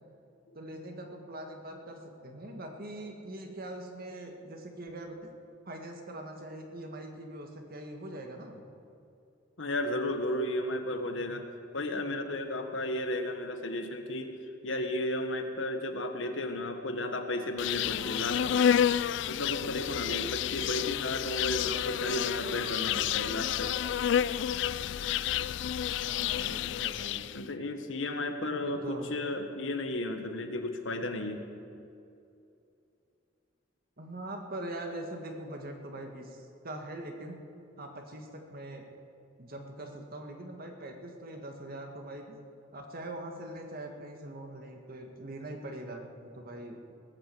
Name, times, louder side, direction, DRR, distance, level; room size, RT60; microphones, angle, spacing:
voice 1, 0.5-5.3 5.6-8.6 20.7-21.1 26.0-27.2 28.6-29.1 34.0-37.4 37.8-38.9 39.4-42.4 42.7-46.9, right 1 dB, 50° right, 3 dB, 1.8 m, -42 dB
voice 2, 9.6-11.4 11.7-14.3 14.6-18.6 19.3-23.7 27.3-31.4, left 1 dB, 85° left, 6 dB, 1.4 m, -34 dB
Insect, 17.6-27.4, left 9 dB, 65° left, 0.3 m, -30 dB
19.0 x 8.8 x 7.8 m, 2.6 s
head